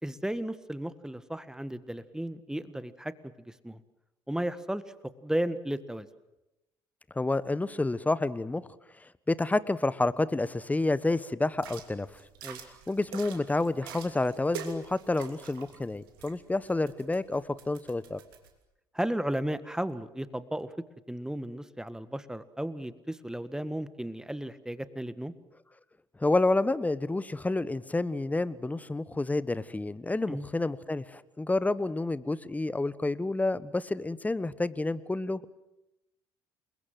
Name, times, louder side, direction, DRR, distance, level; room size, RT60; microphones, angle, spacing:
voice 1, 0.0-3.1 3.5-3.8 4.3-4.8 5.2-6.1 12.4-12.6 18.9-20.7 21.1-25.3 30.3-30.4, right 1 dB, 5° right, 14 dB, 1.6 m, -34 dB
voice 2, 7.1-8.7 9.3-12.1 12.9-18.2 26.2-35.5, left 2 dB, 15° left, 18 dB, 1.3 m, -29 dB
sound 1, 11.5-18.5, right 7 dB, 70° right, 3.0 m, -46 dB
28.5 x 22.0 x 7.8 m, 0.92 s
figure-of-eight pair, 55°, 12 cm